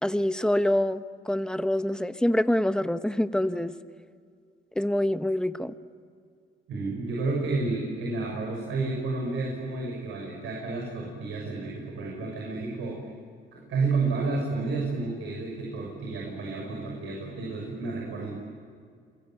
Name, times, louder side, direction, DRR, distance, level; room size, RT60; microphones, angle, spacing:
voice 1, 0.0-3.7 4.7-5.7, left 1 dB, 5° left, 11 dB, 1.1 m, -26 dB
voice 2, 6.7-13.0 13.5-18.4, right 3 dB, 80° right, -1 dB, 6.8 m, -31 dB
28.5 x 22.5 x 9.2 m, 2.1 s
cardioid pair, 90°, 20 cm